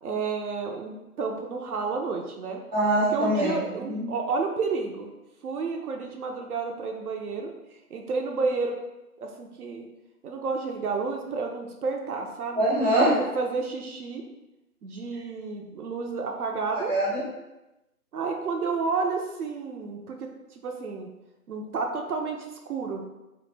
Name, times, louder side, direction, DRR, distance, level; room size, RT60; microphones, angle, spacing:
voice 1, 0.0-2.6 3.1-5.1 5.4-7.5 7.9-8.7 9.2-9.9 10.2-12.6 13.1-14.3 14.8-16.9 18.1-21.1 21.5-23.0, right 4 dB, 70° right, 2 dB, 0.5 m, -31 dB
voice 2, 2.7-3.6 3.9-4.0 12.5-13.1 16.9-17.2, right 1 dB, 5° right, -14 dB, 0.7 m, -23 dB
2.4 x 2.0 x 3.2 m, 0.97 s
figure-of-eight pair, 155°, 46 cm